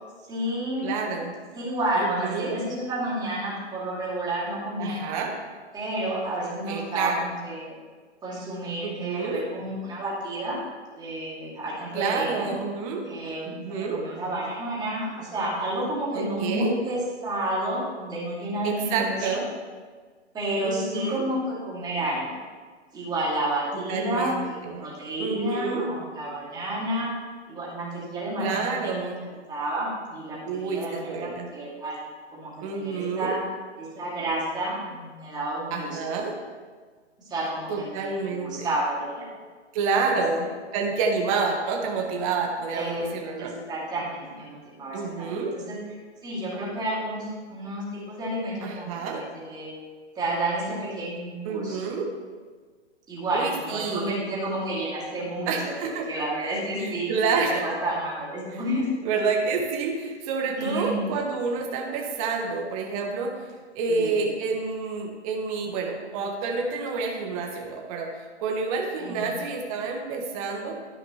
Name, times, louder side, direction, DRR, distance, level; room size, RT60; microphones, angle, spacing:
voice 1, 0.3-1.0 1.5-5.3 5.7-7.7 8.2-10.6 10.9-12.5 13.0-19.4 20.3-22.4 22.9-27.1 27.5-29.1 29.5-32.0 32.3-33.4 33.8-36.0 37.3-39.3 40.1-40.2 42.7-43.1 43.4-45.8 46.2-49.7 50.1-51.8 53.1-58.9 60.6-61.1 63.9-64.3 69.0-69.3, right 1 dB, 10° right, -7 dB, 2.5 m, -30 dB
voice 2, 0.8-1.3 2.0-2.5 4.8-5.3 6.7-7.3 8.8-9.4 11.9-13.0 13.4-14.0 16.1-16.7 18.6-19.5 20.6-21.2 23.9-24.9 25.2-25.8 28.4-29.2 30.4-31.5 32.6-33.3 35.7-36.3 37.7-38.7 39.7-43.5 44.9-45.5 48.6-49.2 51.4-52.1 53.3-54.1 55.5-56.1 56.8-57.6 58.5-58.6 59.0-70.8, right 4 dB, 30° right, 2 dB, 1.4 m, -28 dB
13.0 x 5.0 x 3.1 m, 1.5 s
hypercardioid pair, 140°, 35 cm